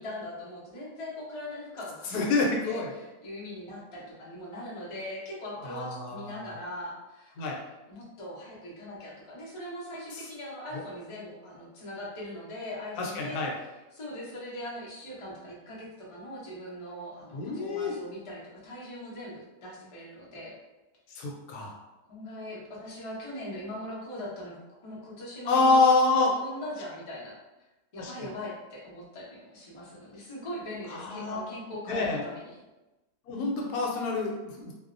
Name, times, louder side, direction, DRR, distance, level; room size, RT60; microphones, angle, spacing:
voice 1, 0.0-7.5 7.9-13.7 13.9-20.5 21.5-21.7 22.1-27.4 27.9-32.6, left 1 dB, 50° left, -6 dB, 0.4 m, -40 dB
voice 2, 2.1-2.9 5.6-6.3 7.4-7.6 10.7-10.8 13.0-13.5 17.3-18.0 21.1-21.7 25.5-26.3 28.0-28.3 30.9-31.4 31.9-32.2 33.3-34.7, left 3 dB, 80° left, -1 dB, 1.1 m, -27 dB
2.6 x 2.0 x 2.4 m, 1.0 s
omnidirectional pair, 1.7 m